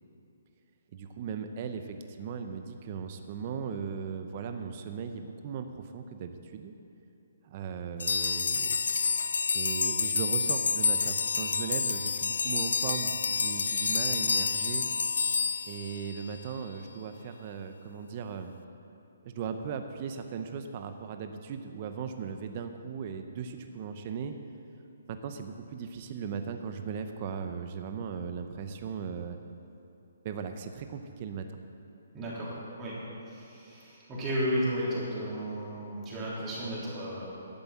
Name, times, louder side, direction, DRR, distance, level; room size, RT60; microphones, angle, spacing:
voice 1, 0.9-6.7 7.4-14.9 15.7-18.6 19.2-24.3 25.1-29.4 30.2-31.6, right 6 dB, 35° right, 7 dB, 0.7 m, -38 dB
sound 1, 8.0-16.5, left 5 dB, 80° left, 0.5 m, -29 dB
voice 2, 32.1-33.0 33.3-37.3, equal, 20° right, -7 dB, 3.2 m, -33 dB
11.5 x 7.7 x 7.2 m, 2.8 s
hypercardioid pair, 160°, 0 cm